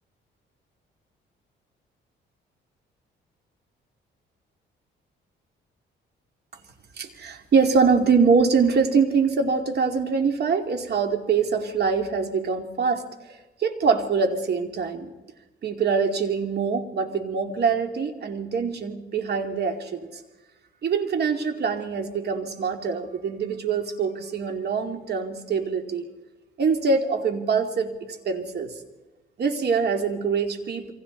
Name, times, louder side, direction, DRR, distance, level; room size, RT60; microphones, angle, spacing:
voice 1, 7.0-15.1 15.6-20.1 20.8-26.1 26.6-28.7 29.4-30.9, right 5 dB, 55° right, 5 dB, 2.6 m, -24 dB
28.0 x 24.0 x 4.1 m, 1.1 s
cardioid pair, 90°, 20 cm